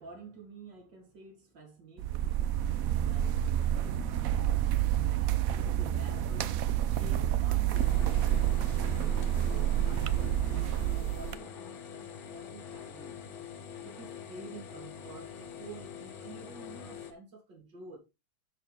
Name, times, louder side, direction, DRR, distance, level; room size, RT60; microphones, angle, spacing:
voice 1, 0.0-6.6 6.9-8.2 9.0-13.2 13.8-18.0, right 3 dB, 55° right, 3.6 m, -50 dB
sound 1, 2.0-11.3, right 11 dB, 85° right, 0.7 m, -29 dB
sound 2, 7.7-17.1, left 8 dB, 70° left, 2.0 m, -45 dB
12.5 x 4.6 x 3.6 m
omnidirectional pair, 2.3 m